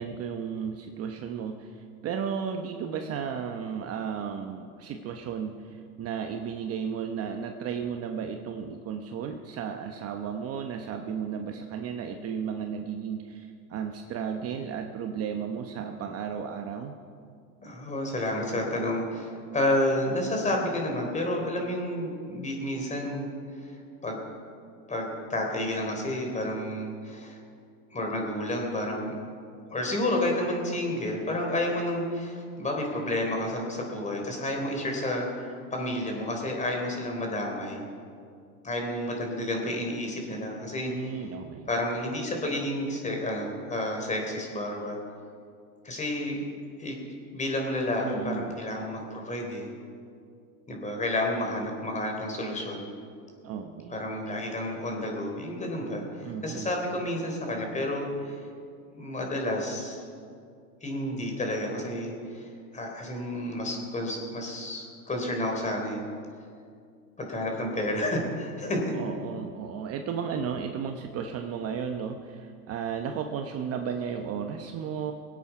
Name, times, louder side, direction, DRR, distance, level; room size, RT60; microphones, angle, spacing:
voice 1, 0.0-17.0 40.9-41.7 48.0-48.5 53.4-54.0 56.2-56.7 68.9-75.1, right 7 dB, 35° right, 5 dB, 0.9 m, -34 dB
voice 2, 17.6-23.3 23.6-24.2 24.9-27.4 27.9-29.1 29.7-37.8 38.6-41.1 41.7-45.0 45.8-46.4 46.8-47.0 47.3-49.7 50.7-52.9 53.9-58.4 58.9-60.0 60.8-66.0 67.2-69.0, left 1 dB, 15° left, 1 dB, 3.6 m, -30 dB
22.5 x 8.6 x 5.9 m, 2.3 s
supercardioid pair, 115°, 44 cm